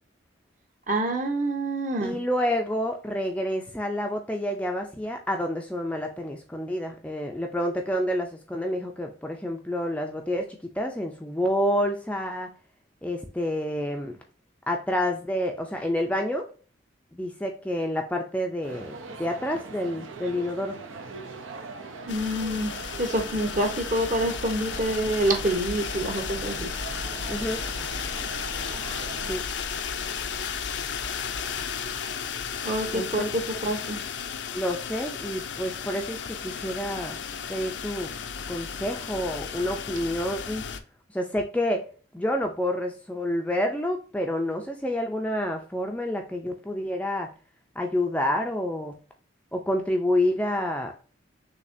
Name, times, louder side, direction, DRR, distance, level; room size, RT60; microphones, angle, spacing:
voice 1, 0.9-2.1 22.1-22.7 23.0-26.7 32.6-34.0, right 1 dB, 40° right, 4 dB, 0.9 m, -27 dB
voice 2, 2.0-12.5 13.0-14.2 14.7-16.5 17.1-20.8 27.3-27.6 29.2-29.4 32.9-33.3 34.5-37.2 37.5-38.1 38.5-40.7 41.1-41.9 42.1-47.3 47.8-48.9 49.5-50.9, left 1 dB, 5° left, 2 dB, 0.4 m, -28 dB
sound 1, 18.6-29.4, right 3 dB, 85° right, 0.7 m, -41 dB
sound 2, 22.1-40.8, left 6 dB, 65° left, 0.5 m, -34 dB
6.2 x 2.8 x 2.6 m, 0.39 s
head